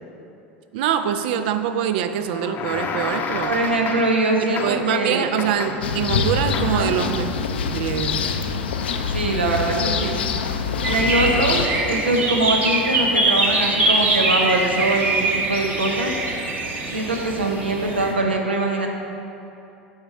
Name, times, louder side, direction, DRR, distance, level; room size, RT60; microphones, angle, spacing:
voice 1, 0.7-3.5 4.5-7.3 7.7-8.3, right 9 dB, 60° right, 10 dB, 0.4 m, -24 dB
sound 1, 2.3-4.3 4.6-5.0 5.4-6.0 6.5-6.9, left 5 dB, 35° left, 0.6 m, -30 dB
voice 2, 3.5-5.3 6.6-6.9 9.1-10.2 10.8-16.1 16.9-18.9, right 2 dB, 85° right, 1 dB, 0.8 m, -22 dB
sound 2, 5.8-11.7, left 5 dB, 75° left, 0.5 m, -25 dB
sound 3, 10.8-18.1, right 2 dB, 30° right, 1.1 m, -23 dB
7.9 x 5.1 x 4.3 m, 2.9 s
figure-of-eight pair, 80°, 6 cm